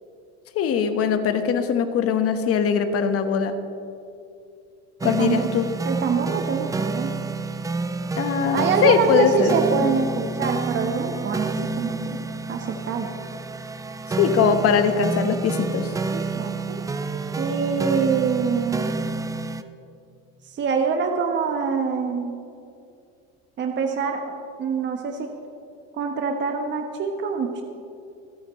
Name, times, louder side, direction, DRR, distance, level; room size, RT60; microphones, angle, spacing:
voice 1, 0.5-3.5 5.0-5.7 8.2-9.5 9.8-9.9 14.1-15.9, left 7 dB, 45° left, 8 dB, 1.2 m, -21 dB
sound 1, 5.0-19.6, right 4 dB, 10° right, 0.4 m, -29 dB
voice 2, 5.0-5.5 5.8-7.1 8.5-13.1 16.1-16.8 17.4-18.8 20.4-22.4 23.6-25.3 25.9-27.6, right 5 dB, 35° right, 4 dB, 1.0 m, -25 dB
24.5 x 9.0 x 3.1 m, 2.5 s
supercardioid pair, 110°, 33 cm